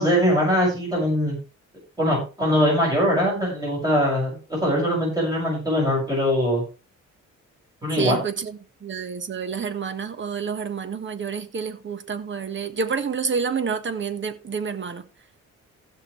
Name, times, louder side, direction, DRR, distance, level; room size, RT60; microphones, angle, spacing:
voice 1, 0.0-1.4 2.0-6.6 7.8-8.2, equal, 10° right, 6.6 m, -22 dB
voice 2, 8.0-15.0, right 6 dB, 40° right, 1.4 m, -29 dB
16.0 x 6.2 x 3.3 m
cardioid pair, 90°, 30 cm